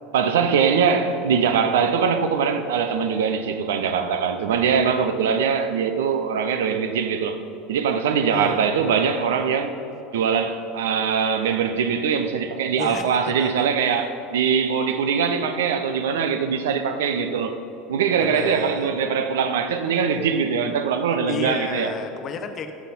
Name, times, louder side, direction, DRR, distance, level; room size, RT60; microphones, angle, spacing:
voice 1, 0.1-7.4 7.7-9.7 10.1-17.6 17.9-21.9, right 6 dB, 65° right, 0.7 m, -22 dB
voice 2, 8.3-8.7 12.8-13.7 18.2-19.0 21.3-22.7, left 5 dB, 35° left, 0.9 m, -32 dB
16.0 x 5.7 x 5.4 m
figure-of-eight pair, 75°, 0 cm